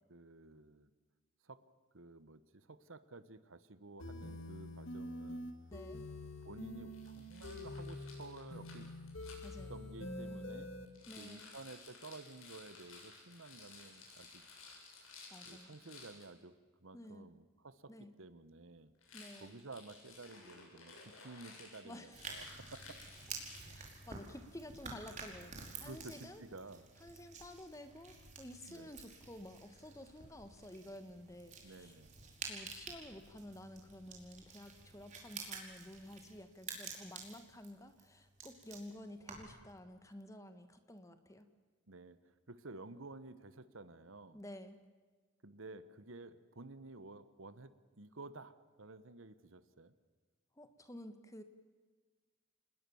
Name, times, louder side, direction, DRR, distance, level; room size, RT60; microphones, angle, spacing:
voice 1, 0.1-0.9 1.4-1.6 1.9-5.5 6.4-8.9 9.7-10.7 11.2-14.4 15.0-15.1 15.4-18.9 19.3-23.0 23.4-23.8 25.8-26.9 28.7-29.0 31.6-32.2 41.9-44.4 45.4-49.9, right 3 dB, 75° right, 14 dB, 1.3 m, -53 dB
sound 1, 4.0-10.9, left 1 dB, 70° left, 2.2 m, -46 dB
voice 2, 5.7-6.0 9.4-9.8 11.1-11.5 15.3-15.7 16.9-17.3 17.9-18.1 19.1-19.6 21.8-22.2 23.7-26.4 27.0-32.0 32.5-41.5 44.3-44.8 50.6-51.4, left 1 dB, 15° left, 9 dB, 1.5 m, -52 dB
Rattle, 6.9-9.5 10.9-16.3 19.0-24.0, left 4 dB, 90° left, 7.8 m, -56 dB
sound 2, 22.1-39.6, right 4 dB, 35° right, 4.9 m, -50 dB
28.0 x 20.0 x 7.2 m, 1.4 s
head